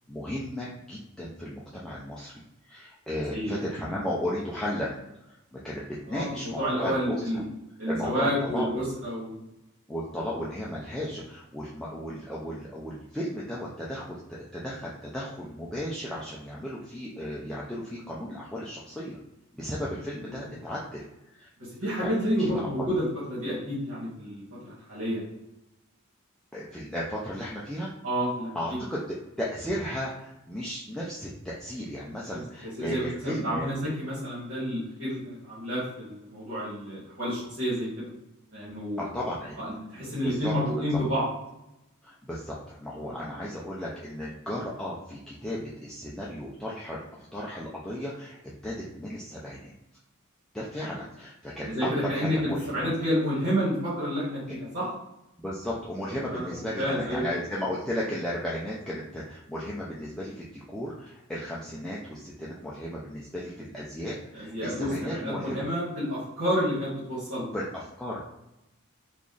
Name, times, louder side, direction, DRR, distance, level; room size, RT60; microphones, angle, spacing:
voice 1, 0.1-5.0 5.3-7.4 7.9-8.9 9.9-19.2 19.5-21.5 22.0-22.1 22.4-22.6 26.5-27.9 28.5-33.7 39.0-39.6 40.2-40.5 42.0-48.4 48.6-49.7 50.5-52.9 54.5-54.6 55.4-65.7 67.5-68.2, equal, 5° left, -7 dB, 0.4 m, -35 dB
voice 2, 3.3-3.7 6.1-7.4 7.8-9.4 21.8-25.3 28.0-28.8 32.8-38.1 38.5-39.0 39.6-39.7 39.9-41.3 43.0-43.1 51.6-54.9 56.3-57.2 64.3-67.4, equal, 65° right, -9 dB, 1.5 m, -29 dB
3.0 x 2.5 x 3.8 m, 0.90 s
head